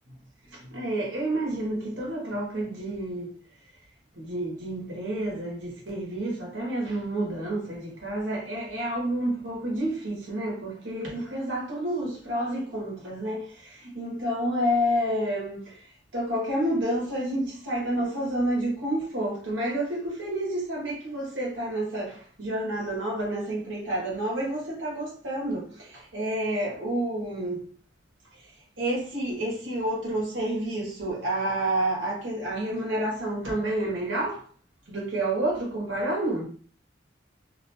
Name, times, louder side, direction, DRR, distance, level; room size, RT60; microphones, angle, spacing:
voice 1, 0.5-3.3 4.2-15.7 16.1-27.7 28.8-34.4 34.9-36.5, right 1 dB, 85° right, 0.9 m, -29 dB
2.4 x 2.2 x 2.8 m
head